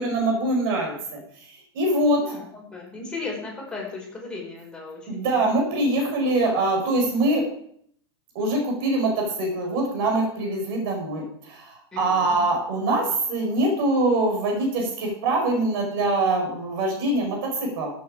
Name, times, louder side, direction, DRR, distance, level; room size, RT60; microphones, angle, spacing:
voice 1, 0.0-1.5 1.7-2.2 5.1-7.4 8.3-17.9, right 2 dB, 55° right, 1 dB, 4.8 m, -24 dB
voice 2, 2.2-5.5 11.9-12.4, left 3 dB, 5° left, -3 dB, 5.9 m, -36 dB
14.5 x 8.5 x 5.0 m, 0.64 s
figure-of-eight pair, 100°, 14 cm